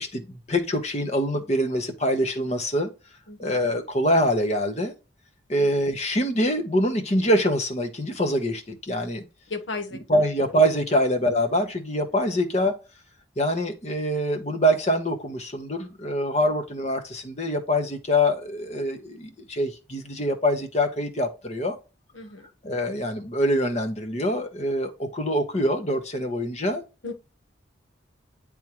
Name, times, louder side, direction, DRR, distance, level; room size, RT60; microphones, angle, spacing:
voice 1, 0.0-2.9 3.4-4.9 5.5-9.2 10.1-12.7 13.4-21.8 22.6-26.8, equal, 35° left, 1.1 m, -24 dB
voice 2, 9.5-10.0 22.1-22.5 27.0-27.1, left 3 dB, 80° left, 1.3 m, -34 dB
10.0 x 3.6 x 3.1 m
head